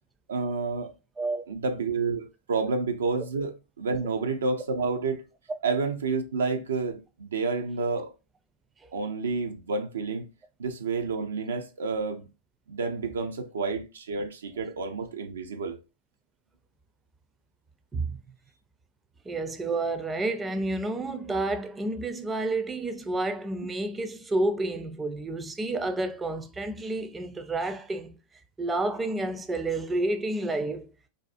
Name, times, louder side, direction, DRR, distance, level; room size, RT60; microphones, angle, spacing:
voice 1, 0.3-0.9 1.5-5.2 5.6-8.1 8.9-10.3 10.6-12.2 12.7-15.8, right 4 dB, 90° right, 0.4 m, -29 dB
voice 2, 19.3-28.2 28.6-30.9, right 2 dB, 15° right, 0.4 m, -30 dB
2.5 x 2.3 x 2.4 m
hypercardioid pair, 110°, 0 cm